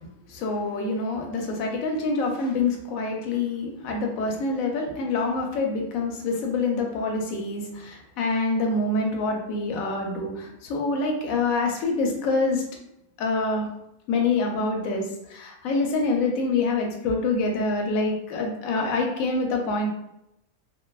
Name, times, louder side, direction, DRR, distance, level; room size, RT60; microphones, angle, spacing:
voice 1, 0.3-12.6 13.2-13.7 14.1-19.9, left 3 dB, 70° left, 1 dB, 0.9 m, -26 dB
2.6 x 2.1 x 2.2 m, 0.81 s
omnidirectional pair, 1.6 m